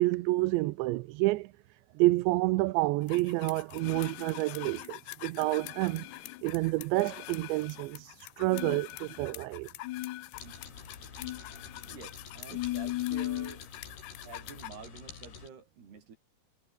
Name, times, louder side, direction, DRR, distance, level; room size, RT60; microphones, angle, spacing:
voice 1, 0.0-1.5 2.0-6.1 6.4-9.7 10.4-10.5, right 20 dB, 85° right, 3.0 m, -29 dB
sound 1, 3.1-14.7, left 17 dB, 80° left, 2.9 m, -39 dB
sound 2, 10.3-15.5, left 6 dB, 65° left, 7.0 m, -48 dB
voice 2, 11.9-13.6 14.2-16.2, right 6 dB, 65° right, 6.8 m, -48 dB
omnidirectional pair, 5.0 m